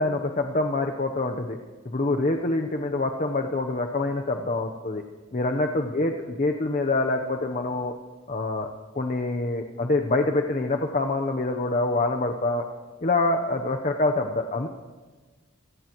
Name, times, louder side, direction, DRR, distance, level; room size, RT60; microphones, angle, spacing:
voice 1, 0.0-1.6 1.8-5.0 5.3-7.9 8.3-8.7 8.9-12.6 13.0-14.7, left 2 dB, 40° left, 4 dB, 0.8 m, -25 dB
27.5 x 17.0 x 3.0 m, 1.3 s
head